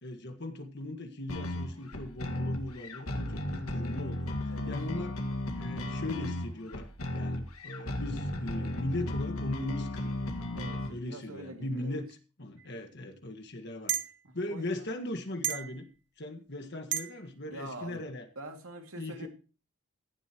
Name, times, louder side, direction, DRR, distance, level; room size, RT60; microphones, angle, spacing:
voice 1, 0.0-5.2 5.6-10.3 10.9-14.0 14.3-15.9 16.2-18.3 19.0-19.3, left 1 dB, 50° left, 5 dB, 1.8 m, -39 dB
sound 1, 1.3-10.9, left 1 dB, 80° left, 1.9 m, -35 dB
voice 2, 10.5-12.0 14.2-14.9 17.5-18.0 18.4-19.3, right 1 dB, 80° right, 4 dB, 2.6 m, -45 dB
sound 2, 12.6-12.7 13.9-14.1 15.4-15.8 16.9-17.1, right 10 dB, 55° right, 1.0 m, -31 dB
16.0 x 11.5 x 3.1 m, 0.34 s
head